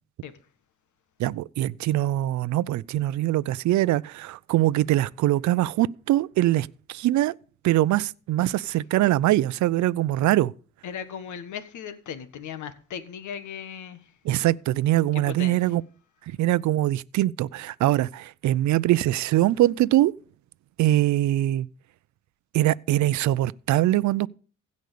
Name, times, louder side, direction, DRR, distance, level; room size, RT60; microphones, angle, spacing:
voice 1, 1.2-7.3 7.6-10.5 14.2-15.8 16.4-20.1 20.8-21.7 22.5-24.3, right 15 dB, 70° right, 0.5 m, -23 dB
voice 2, 10.8-14.0 15.1-15.6, left 8 dB, 75° left, 1.6 m, -37 dB
16.0 x 5.3 x 6.7 m
cardioid pair, 90°, 30 cm